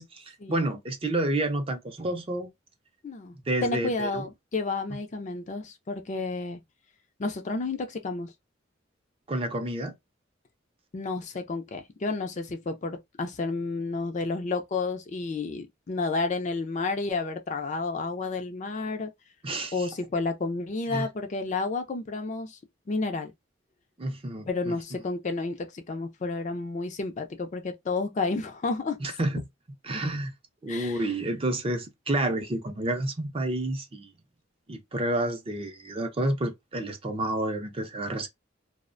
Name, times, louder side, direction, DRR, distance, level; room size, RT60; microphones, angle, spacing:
voice 1, 0.0-2.5 3.5-4.3 9.3-9.9 19.4-19.9 20.9-21.1 24.0-24.7 29.0-29.5 29.8-30.3 30.6-34.1 34.7-38.3, right 1 dB, 30° right, 0.5 m, -29 dB
voice 2, 3.0-3.4 3.6-6.6 7.2-8.3 10.9-19.1 19.7-22.6 22.9-23.3 24.5-29.0 30.7-31.1, left 3 dB, 40° left, 0.4 m, -31 dB
2.4 x 2.1 x 2.4 m
head